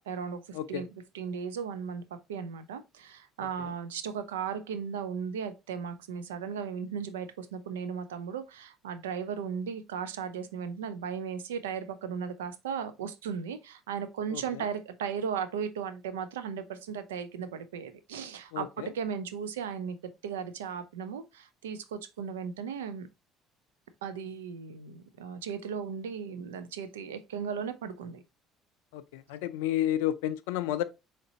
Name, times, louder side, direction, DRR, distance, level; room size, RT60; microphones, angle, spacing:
voice 1, 0.1-20.0 20.2-23.1 24.0-28.2, right 7 dB, 85° right, 0.4 m, -36 dB
voice 2, 18.5-18.9 28.9-30.8, left 12 dB, 75° left, 0.3 m, -31 dB
3.8 x 3.2 x 2.7 m
hypercardioid pair, 60°, 0 cm